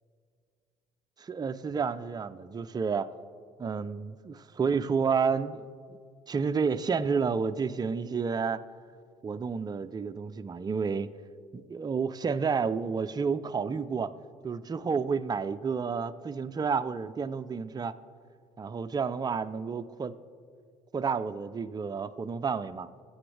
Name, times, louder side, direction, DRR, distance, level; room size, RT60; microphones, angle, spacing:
voice 1, 1.2-3.1 3.6-5.7 6.3-8.6 9.2-11.1 11.5-14.1 14.4-18.0 18.6-20.1 20.9-22.9, right 5 dB, 25° right, 11 dB, 0.5 m, -30 dB
21.5 x 7.9 x 3.3 m, 2.2 s
hypercardioid pair, 55°, 15 cm